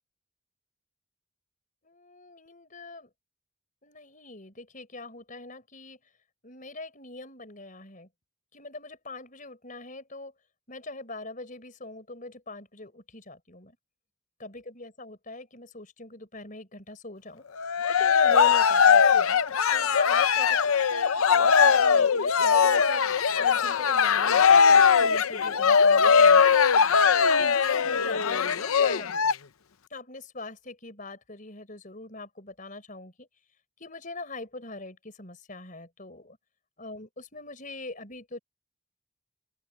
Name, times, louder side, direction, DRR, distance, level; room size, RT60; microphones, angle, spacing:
voice 1, 1.8-3.1 3.8-6.0 6.4-8.1 8.5-10.3 10.7-13.8 14.4-17.4 17.9-19.4 19.7-26.6 27.2-29.1 29.9-33.3 33.8-36.4 36.8-38.4, left 2 dB, 35° left, 5.0 m, -42 dB
Cheering, 17.6-29.3, left 6 dB, 75° left, 0.7 m, -20 dB
open air
head